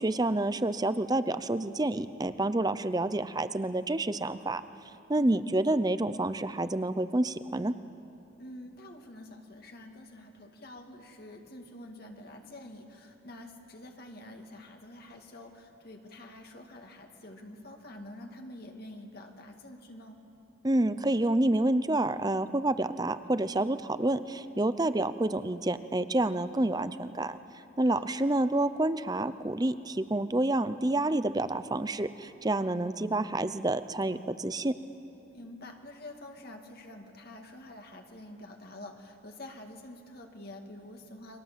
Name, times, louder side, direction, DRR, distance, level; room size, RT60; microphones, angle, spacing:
voice 1, 0.0-4.6 5.1-7.7 20.6-27.4 27.8-34.7, right 2 dB, 20° right, 12 dB, 0.6 m, -28 dB
voice 2, 5.2-5.6 8.4-20.2 27.8-28.4 35.3-41.4, left 1 dB, 50° left, 3 dB, 2.2 m, -47 dB
29.0 x 24.5 x 7.5 m, 3.0 s
head